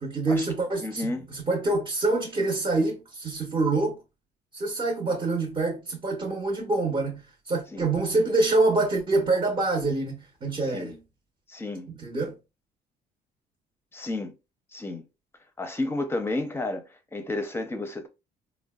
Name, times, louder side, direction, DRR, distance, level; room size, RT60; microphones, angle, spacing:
voice 1, 0.0-4.0 4.5-11.0 11.9-12.3, right 2 dB, 30° right, 0.8 m, -26 dB
voice 2, 0.8-1.3 7.7-7.9 10.7-10.9 11.5-11.9 13.9-14.3 14.7-15.0 15.6-18.1, left 2 dB, 15° left, 0.6 m, -31 dB
3.7 x 2.1 x 2.3 m
cardioid pair, 110°, 17 cm